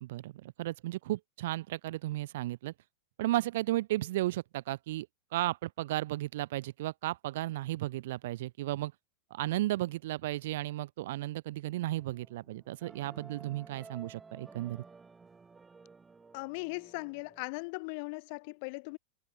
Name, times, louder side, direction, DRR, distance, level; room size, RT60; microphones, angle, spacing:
voice 1, 0.0-2.7 3.2-5.1 5.3-8.9 9.3-14.8, right 16 dB, 55° right, 1.0 m, -34 dB
sound 1, 11.9-17.4, right 4 dB, 15° right, 3.9 m, -54 dB
voice 2, 16.3-19.0, left 31 dB, 45° left, 1.8 m, -39 dB
figure-of-eight pair, 90°, 0 cm